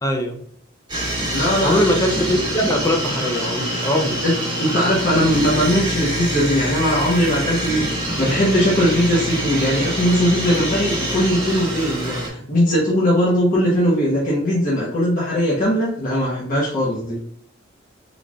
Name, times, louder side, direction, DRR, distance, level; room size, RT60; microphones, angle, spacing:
voice 1, 0.0-0.4 1.6-4.2, equal, 15° left, 4 dB, 0.5 m, -21 dB
sound 1, 0.9-12.3, right 1 dB, 25° right, 1.5 m, -25 dB
voice 2, 1.3-1.8 4.2-4.3 4.6-17.2, equal, 45° left, -7 dB, 1.0 m, -19 dB
3.9 x 3.3 x 2.4 m, 0.65 s
head